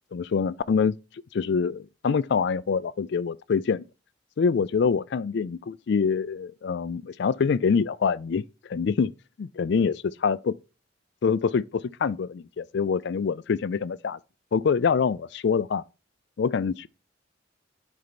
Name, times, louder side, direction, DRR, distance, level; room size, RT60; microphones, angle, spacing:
voice 1, 0.1-1.0 1.3-3.8 4.4-8.4 8.7-9.1 9.4-10.5 11.2-14.2 14.5-15.8 16.4-16.9, left 5 dB, 65° left, 0.4 m, -25 dB
9.5 x 4.5 x 4.1 m
head